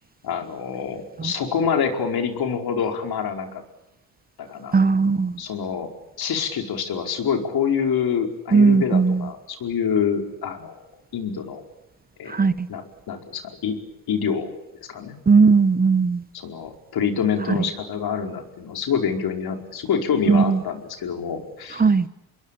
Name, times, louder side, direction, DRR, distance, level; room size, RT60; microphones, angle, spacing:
voice 1, 0.2-3.6 4.4-4.8 5.4-5.9 6.2-10.8 11.1-11.6 12.2-12.4 12.7-13.8 14.1-14.5 14.8-15.2 16.3-21.8, left 7 dB, 60° left, 4 dB, 5.0 m, -26 dB
voice 2, 4.7-5.4 8.5-9.3 12.3-12.7 15.3-16.2 17.5-17.6 20.3-20.6 21.7-22.1, right 4 dB, 20° right, 15 dB, 0.9 m, -18 dB
28.0 x 22.0 x 8.5 m, 0.89 s
cardioid pair, 100°, 42 cm